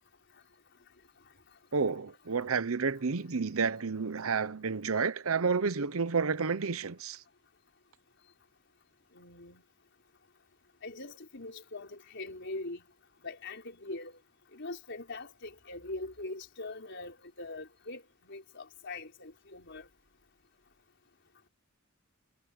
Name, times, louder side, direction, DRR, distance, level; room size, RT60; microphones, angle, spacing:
voice 1, 1.7-7.2, right 5 dB, 80° right, 0.8 m, -30 dB
voice 2, 9.1-9.6 10.8-12.8 13.2-14.2 14.5-19.9, left 2 dB, 60° left, 4.4 m, -42 dB
head